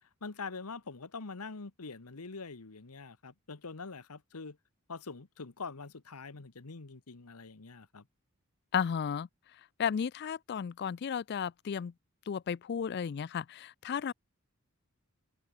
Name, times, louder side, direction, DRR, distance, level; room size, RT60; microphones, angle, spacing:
voice 1, 0.2-4.6 4.9-8.0, left 4 dB, 85° left, 1.2 m, -44 dB
voice 2, 8.7-9.3 9.8-11.9 12.3-14.1, left 7 dB, 50° left, 0.3 m, -33 dB
head